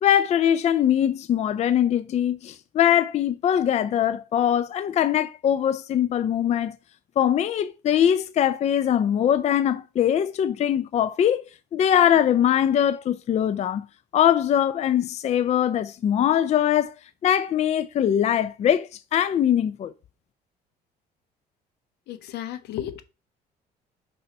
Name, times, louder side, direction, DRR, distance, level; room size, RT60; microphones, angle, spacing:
voice 1, 0.0-6.8 7.2-11.4 11.7-13.8 14.1-16.9 17.2-19.9, left 10 dB, 40° left, 0.4 m, -22 dB
voice 2, 22.1-23.0, left 11 dB, 80° left, 0.8 m, -33 dB
5.6 x 4.0 x 5.2 m
cardioid pair, 110°, 17 cm